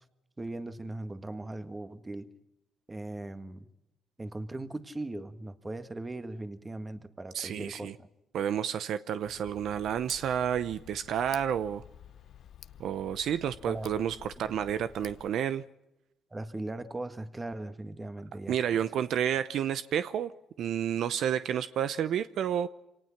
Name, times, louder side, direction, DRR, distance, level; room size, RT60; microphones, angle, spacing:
voice 1, 0.4-2.3 2.9-3.7 4.2-8.1 13.7-13.9 14.4-14.5 16.3-18.8, right 2 dB, 20° right, 10 dB, 1.7 m, -39 dB
voice 2, 7.3-7.9 8.3-11.8 12.8-15.6 18.5-20.3 20.6-22.7, right 9 dB, 75° right, 13 dB, 0.7 m, -30 dB
Tick, 9.3-15.3, left 10 dB, 70° left, 0.8 m, -51 dB
25.5 x 18.5 x 5.9 m, 0.89 s
cardioid pair, 80°, 0 cm